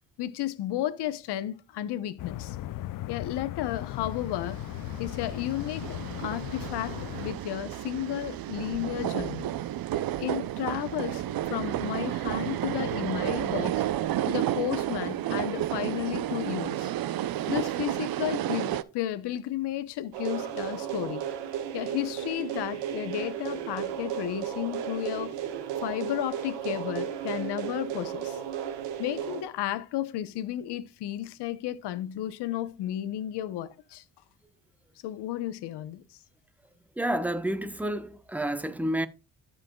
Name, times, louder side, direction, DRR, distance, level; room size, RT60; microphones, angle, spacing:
voice 1, 0.2-2.6 3.1-4.6 5.0-9.5 10.2-13.8 14.3-16.9 17.5-21.2 21.7-25.4 25.8-28.4 29.0-34.0 35.0-36.0, left 12 dB, 75° left, 1.0 m, -33 dB
sound 1, 2.2-7.3, left 14 dB, 55° left, 0.5 m, -37 dB
sound 2, 4.5-18.8, right 12 dB, 60° right, 0.6 m, -31 dB
sound 3, 20.1-29.4, right 9 dB, 85° right, 1.4 m, -34 dB
voice 2, 37.0-39.1, right 1 dB, 5° right, 0.9 m, -29 dB
13.5 x 5.6 x 2.3 m
supercardioid pair, 75°, 41 cm